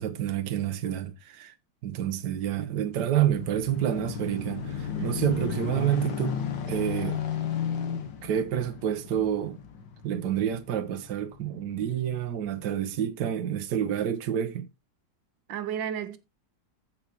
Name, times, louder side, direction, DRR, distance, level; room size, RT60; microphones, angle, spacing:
voice 1, 0.0-1.5 1.8-6.4 6.7-7.2 8.2-9.6 10.0-14.7, right 10 dB, 70° right, 1.5 m, -28 dB
sound 1, 2.7-11.5 12.1-12.2, left 7 dB, 80° left, 2.0 m, -34 dB
voice 2, 5.0-5.5 15.5-16.2, right 9 dB, 85° right, 1.6 m, -34 dB
15.0 x 5.9 x 2.9 m
omnidirectional pair, 2.0 m